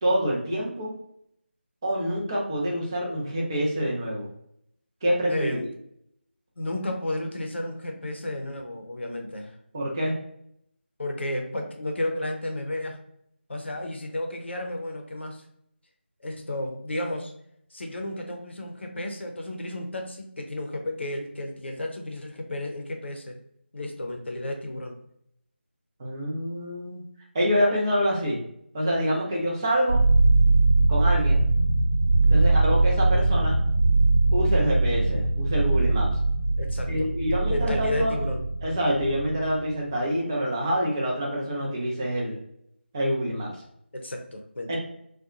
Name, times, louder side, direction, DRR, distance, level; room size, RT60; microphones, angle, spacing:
voice 1, 0.0-0.9 1.8-4.3 5.0-5.6 9.7-10.2 26.0-27.0 27.3-28.4 28.7-30.0 30.9-31.4 32.3-33.6 34.3-36.1 36.9-38.1 38.6-42.4 42.9-43.5 44.7-44.8, equal, 20° right, -3 dB, 0.5 m, -26 dB
voice 2, 5.3-5.6 6.6-9.5 11.0-13.0 13.5-15.4 16.2-17.3 17.7-23.4 23.7-25.0 32.2-32.5 36.6-37.1 37.5-38.4 43.9-44.8, left 1 dB, 70° left, 3 dB, 0.6 m, -32 dB
sound 1, 29.9-39.7, right 2 dB, 70° right, 0.7 m, -22 dB
2.7 x 2.2 x 2.4 m, 0.74 s
figure-of-eight pair, 170°, 6 cm